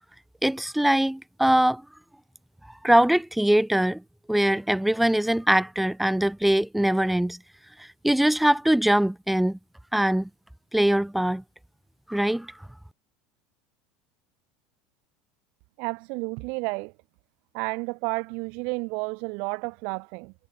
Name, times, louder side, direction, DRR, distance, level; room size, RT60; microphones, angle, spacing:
voice 1, 0.4-1.8 2.8-4.0 4.3-7.4 8.0-9.6 9.9-10.3 10.7-11.4 12.1-12.5, right 1 dB, 5° right, 0.6 m, -22 dB
voice 2, 15.8-16.9 17.5-20.3, right 32 dB, 60° right, 1.6 m, -31 dB
hypercardioid pair, 75°, 3 cm